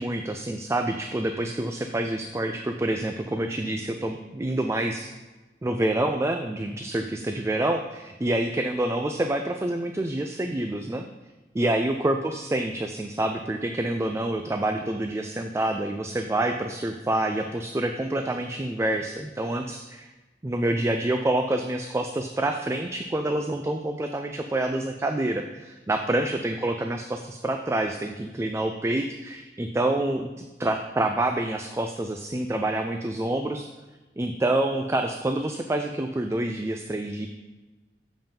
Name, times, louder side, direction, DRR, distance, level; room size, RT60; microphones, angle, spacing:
voice 1, 0.0-5.1 5.6-11.0 11.5-20.1 20.4-33.7 34.2-37.3, right 1 dB, 15° right, 5 dB, 0.3 m, -27 dB
7.2 x 5.5 x 5.2 m, 1.2 s
head